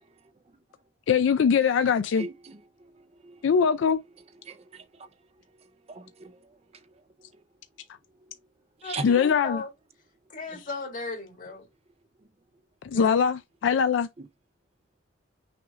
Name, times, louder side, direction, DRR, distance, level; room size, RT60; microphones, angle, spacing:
voice 1, 1.1-2.3 3.4-4.0 9.0-9.6 12.8-14.1, left 6 dB, 65° left, 0.3 m, -22 dB
voice 2, 2.2-2.6 3.2-3.4 4.5-5.1 5.9-6.4 8.8-9.1, right 3 dB, 30° right, 0.5 m, -38 dB
voice 3, 8.8-9.7 10.3-11.7 12.9-13.2, left 4 dB, 45° left, 1.8 m, -36 dB
6.0 x 2.4 x 3.6 m
head